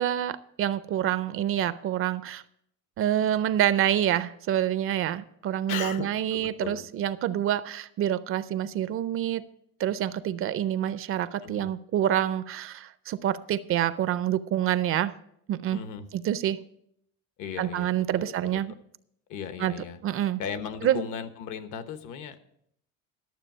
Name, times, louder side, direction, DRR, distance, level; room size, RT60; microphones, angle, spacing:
voice 1, 0.0-2.4 3.0-9.4 9.8-15.1 15.5-15.8 16.1-16.6 17.6-18.7 19.6-19.7 20.0-20.4 20.8-21.0, right 11 dB, 40° right, 15 dB, 0.4 m, -27 dB
voice 2, 5.7-6.8 11.4-11.7 15.7-16.1 17.4-18.6 19.3-20.0 20.4-22.4, left 7 dB, 65° left, 10 dB, 1.2 m, -37 dB
12.5 x 7.2 x 6.1 m, 0.72 s
cardioid pair, 160°, 33 cm